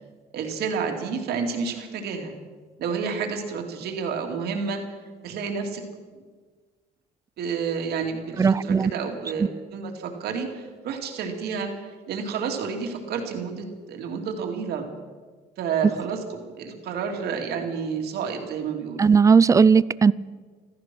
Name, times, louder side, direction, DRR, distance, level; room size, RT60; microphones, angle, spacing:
voice 1, 0.3-2.3 2.8-4.8 5.2-5.8 7.4-14.9 15.6-19.1, right 6 dB, 70° right, 3 dB, 2.6 m, -30 dB
voice 2, 8.4-8.9 19.0-20.1, right 5 dB, 20° right, 20 dB, 0.3 m, -17 dB
16.0 x 14.0 x 6.2 m, 1.5 s
cardioid pair, 110°, 17 cm